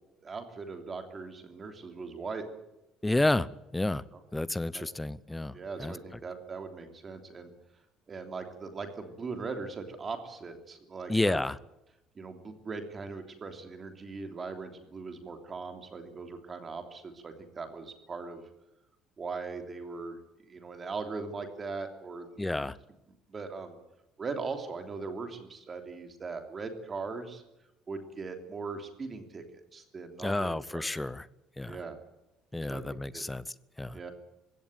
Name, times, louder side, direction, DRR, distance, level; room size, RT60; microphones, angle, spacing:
voice 1, 0.2-2.5 4.7-4.9 5.5-7.5 8.1-11.4 12.1-18.4 19.2-22.4 23.3-23.8 24.2-27.4 27.9-29.4 29.7-30.9 31.6-32.0 32.7-33.2 33.9-34.1, right 4 dB, 25° right, 7 dB, 3.1 m, -40 dB
voice 2, 3.0-4.0 4.3-6.0 11.1-11.6 22.4-22.8 30.2-31.3 31.6-31.8 32.5-34.0, left 2 dB, 5° left, 18 dB, 0.7 m, -30 dB
21.0 x 17.0 x 9.3 m, 0.93 s
cardioid pair, 170°, 0 cm